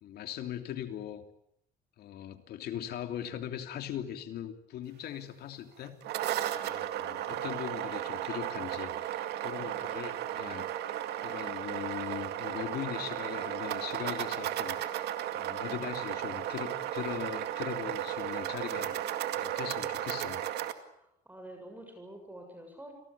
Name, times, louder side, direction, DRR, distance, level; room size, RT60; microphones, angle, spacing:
voice 1, 0.0-1.2 2.0-6.0 6.6-10.7 11.2-19.0 19.4-20.4, left 10 dB, 70° left, 7 dB, 3.1 m, -40 dB
sound 1, 5.8-20.7, right 12 dB, 80° right, 2.2 m, -35 dB
voice 2, 9.6-10.0 21.0-22.9, right 1 dB, 10° right, 4 dB, 7.1 m, -48 dB
29.0 x 19.5 x 8.5 m, 0.73 s
cardioid pair, 110°, 17 cm